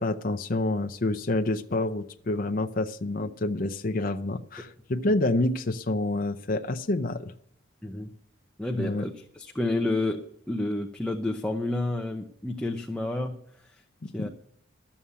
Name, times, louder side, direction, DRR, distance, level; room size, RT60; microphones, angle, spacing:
voice 1, 0.0-7.3 8.8-9.1 14.0-14.3, left 2 dB, 45° left, 7 dB, 0.6 m, -28 dB
voice 2, 8.6-13.3 14.1-14.3, left 2 dB, 5° left, 2 dB, 0.8 m, -30 dB
12.5 x 7.2 x 9.6 m, 0.65 s
head